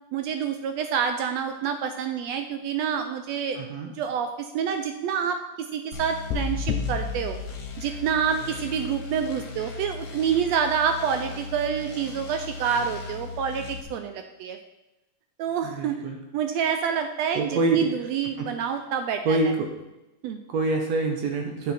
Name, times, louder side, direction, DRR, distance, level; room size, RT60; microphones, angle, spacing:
voice 1, 0.1-3.6 4.0-7.4 7.8-14.6 15.4-16.0 16.3-19.4 20.2-20.4, right 7 dB, 85° right, 7 dB, 1.5 m, -27 dB
voice 2, 3.5-3.9 15.6-16.2 17.3-18.1 18.4-18.5 19.3-19.7 20.5-21.7, right 3 dB, 65° right, 2 dB, 2.1 m, -26 dB
sound 1, 5.9-13.8, left 4 dB, 65° left, 2.4 m, -38 dB
sound 2, 6.3-8.4, left 6 dB, 90° left, 2.1 m, -31 dB
10.0 x 7.5 x 4.4 m, 0.97 s
omnidirectional pair, 3.6 m